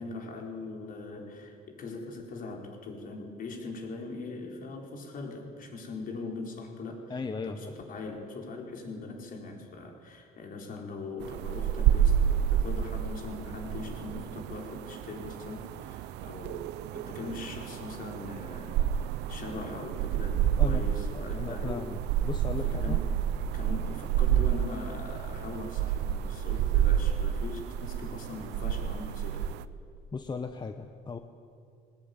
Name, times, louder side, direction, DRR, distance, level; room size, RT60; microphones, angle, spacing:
voice 1, 0.0-7.2 7.4-16.7 16.9-21.9 22.6-23.1 23.5-29.5, left 3 dB, 55° left, 2 dB, 4.5 m, -41 dB
voice 2, 7.1-7.7 20.6-20.8 21.1-23.0 30.1-31.2, left 4 dB, 25° left, 7 dB, 1.1 m, -36 dB
sound 1, 11.2-29.6, right 10 dB, 90° right, 0.8 m, -29 dB
20.5 x 19.0 x 9.7 m, 2.4 s
cardioid pair, 110°, 17 cm